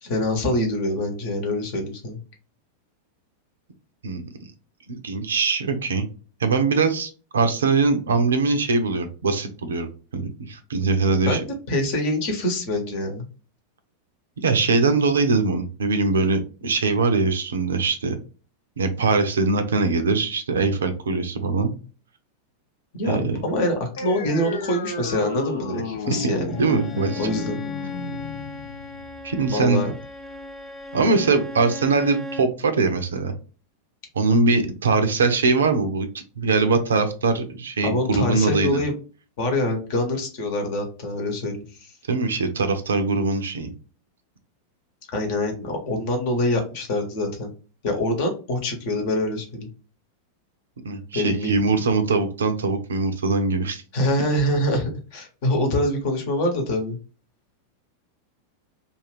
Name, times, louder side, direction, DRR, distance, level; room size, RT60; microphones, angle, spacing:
voice 1, 0.0-2.2 11.1-13.3 23.0-26.6 27.2-27.6 29.5-29.9 37.8-38.9 39.4-41.9 45.1-47.5 47.8-49.7 51.1-51.8 53.9-57.0, left 1 dB, 50° left, 3 dB, 1.0 m, -25 dB
voice 2, 4.9-6.0 6.4-11.4 14.4-18.2 18.8-21.7 23.0-23.4 26.2-26.3 26.6-27.3 29.2-29.8 30.9-33.3 34.2-36.1 36.4-38.8 42.1-43.7 50.8-53.8, right 4 dB, 65° right, 8 dB, 0.5 m, -22 dB
sound 1, 24.0-31.0, left 3 dB, 65° left, 0.5 m, -33 dB
Bowed string instrument, 26.5-32.6, left 3 dB, 10° left, 0.4 m, -36 dB
2.5 x 2.5 x 3.2 m, 0.36 s
figure-of-eight pair, 90°, 0 cm